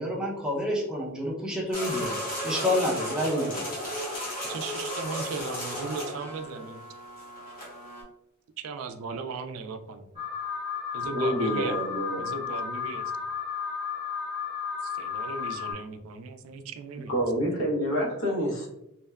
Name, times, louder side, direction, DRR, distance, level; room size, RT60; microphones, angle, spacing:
voice 1, 0.0-3.8, left 1 dB, 5° right, -4 dB, 0.5 m, -29 dB
sound 1, 1.7-8.0, equal, 45° left, 1.0 m, -34 dB
voice 2, 4.4-6.8 8.6-10.2 10.9-11.8 12.2-13.3 14.8-17.2, right 4 dB, 75° right, 9 dB, 0.3 m, -37 dB
Alarm, 10.2-15.7, left 7 dB, 25° right, 1.0 m, -33 dB
voice 3, 11.1-12.2 17.1-18.7, equal, 75° left, -3 dB, 0.9 m, -27 dB
2.7 x 2.1 x 2.2 m, 0.84 s
head